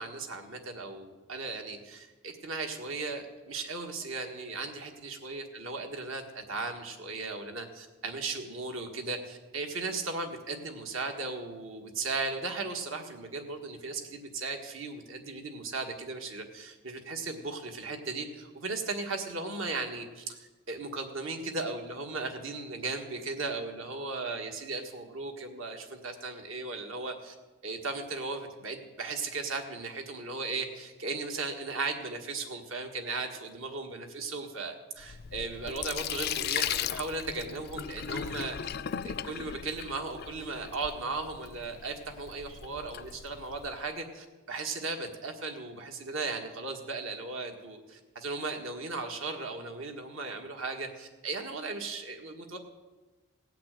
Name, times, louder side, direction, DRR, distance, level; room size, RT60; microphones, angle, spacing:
voice 1, 0.0-27.3 27.6-38.7 39.0-52.6, right 3 dB, 70° right, 4 dB, 1.7 m, -37 dB
Sink (filling or washing), 35.0-43.8, left 9 dB, 45° left, 0.3 m, -37 dB
17.0 x 5.9 x 9.0 m, 1.2 s
head